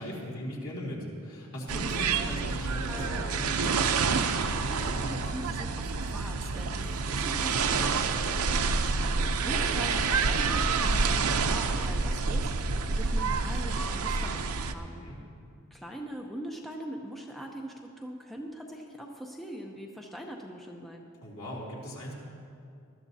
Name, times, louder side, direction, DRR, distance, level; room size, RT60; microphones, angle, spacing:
voice 1, 0.0-3.5 6.5-6.8 14.8-15.2 21.2-22.1, equal, 70° left, -4 dB, 3.2 m, -39 dB
sound 1, 1.7-14.7, right 4 dB, 70° right, 0.6 m, -28 dB
sound 2, 2.9-7.3, equal, 35° left, 2.6 m, -45 dB
voice 2, 4.2-15.0 15.7-21.1, equal, ahead, 0 dB, 0.6 m, -42 dB
20.0 x 12.0 x 2.8 m, 2.4 s
head